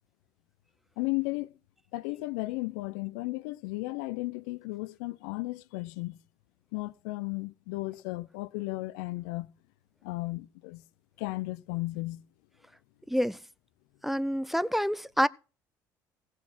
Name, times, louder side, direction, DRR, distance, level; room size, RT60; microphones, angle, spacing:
voice 1, 1.0-1.5 1.9-6.2 6.7-9.5 10.0-10.8 11.2-12.2, left 22 dB, 80° left, 0.5 m, -34 dB
voice 2, 14.0-15.3, equal, ahead, 0.6 m, -27 dB
16.0 x 6.3 x 5.7 m
hypercardioid pair, 65°, 10 cm